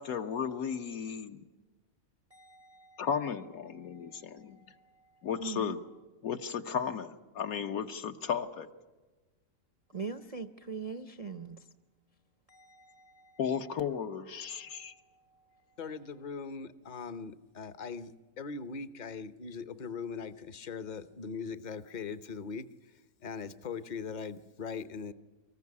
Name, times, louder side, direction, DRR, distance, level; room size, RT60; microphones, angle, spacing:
voice 1, 0.0-1.4 3.0-4.6 5.2-5.8 6.2-8.7 13.4-14.9, left 7 dB, 70° left, 7 dB, 1.5 m, -34 dB
voice 2, 2.3-3.1 3.7-5.8 9.9-11.7 12.5-13.4 14.5-15.8, right 5 dB, 40° right, 9 dB, 0.5 m, -44 dB
voice 3, 15.8-25.1, left 5 dB, 35° left, 13 dB, 0.8 m, -40 dB
24.5 x 14.5 x 9.6 m, 1.2 s
omnidirectional pair, 1.6 m